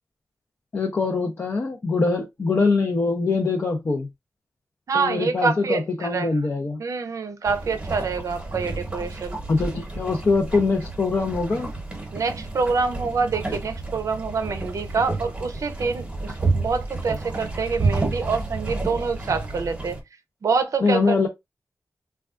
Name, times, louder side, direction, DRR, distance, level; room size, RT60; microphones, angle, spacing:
voice 1, 0.7-4.1 4.9-6.8 9.5-11.7 20.8-21.3, left 4 dB, 45° left, 0.5 m, -23 dB
voice 2, 4.9-6.3 6.8-9.4 12.1-20.0 20.4-21.3, right 4 dB, 70° right, 0.5 m, -26 dB
sound 1, 7.4-20.0, right 3 dB, 20° right, 1.0 m, -30 dB
3.4 x 2.3 x 2.4 m
wide cardioid pair, 110°, 6 cm